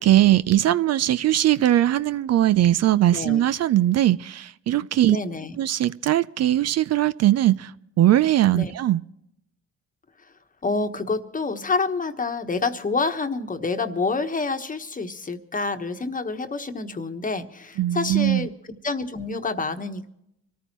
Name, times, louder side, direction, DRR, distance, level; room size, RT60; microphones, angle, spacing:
voice 1, 0.0-5.2 5.6-7.7 8.0-9.0 17.8-18.5, right 13 dB, 55° right, 0.5 m, -20 dB
voice 2, 3.1-3.4 5.1-5.5 8.5-8.7 10.6-20.1, left 3 dB, 25° left, 1.2 m, -28 dB
25.0 x 14.5 x 3.0 m
cardioid pair, 90°, 30 cm